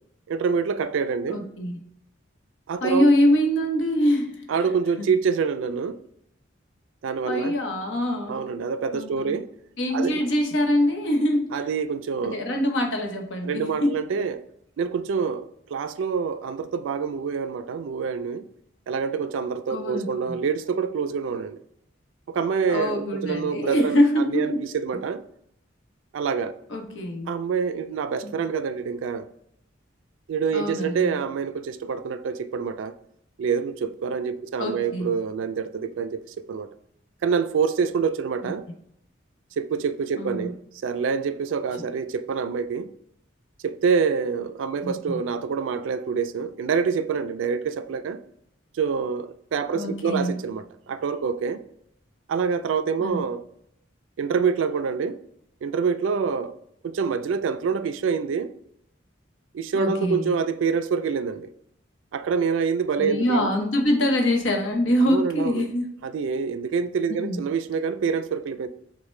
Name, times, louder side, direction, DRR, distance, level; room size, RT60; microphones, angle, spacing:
voice 1, 0.3-1.4 2.7-3.1 4.5-6.0 7.0-7.5 8.3-9.5 9.9-10.2 11.5-12.4 13.4-14.4 14.8-18.5 18.9-21.6 22.3-25.2 26.1-26.5 27.3-29.3 30.3-33.0 33.4-36.7 37.2-38.6 39.6-40.6 40.8-42.9 43.6-48.2 48.7-51.6 52.3-53.4 54.2-55.2 55.6-56.5 56.8-58.5 59.5-61.5 62.1-63.5 65.1-65.7 66.0-68.7, right 6 dB, 85° right, 0.3 m, -26 dB
voice 2, 1.3-1.8 2.8-4.7 5.0-5.1 7.3-8.4 8.9-9.4 9.8-11.7 12.2-14.0 19.7-20.4 22.7-24.6 26.7-27.3 28.2-28.3 30.5-31.2 34.6-35.1 38.4-38.5 40.2-40.5 41.7-41.8 44.8-45.2 49.7-50.4 53.0-53.2 59.7-60.3 63.0-65.9 67.1-67.4, left 1 dB, 75° left, 0.8 m, -24 dB
6.3 x 2.1 x 3.1 m
head